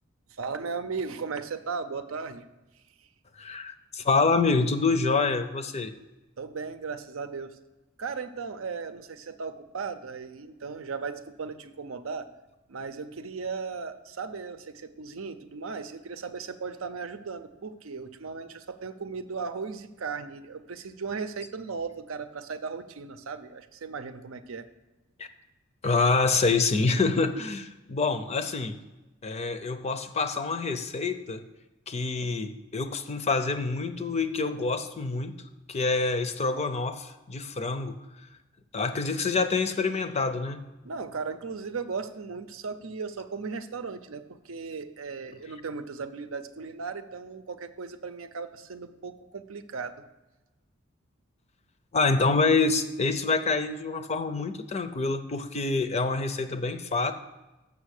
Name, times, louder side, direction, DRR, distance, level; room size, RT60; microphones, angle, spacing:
voice 1, 0.3-2.4 6.4-7.6 8.0-12.3 12.7-24.7 40.8-50.0, right 5 dB, 75° right, 10 dB, 0.6 m, -36 dB
voice 2, 3.4-5.9 25.2-25.3 25.8-28.8 29.2-31.4 31.9-35.3 35.7-37.9 38.7-40.6 51.9-57.1, left 4 dB, 30° left, 9 dB, 0.5 m, -26 dB
7.1 x 6.1 x 6.5 m, 1.1 s
head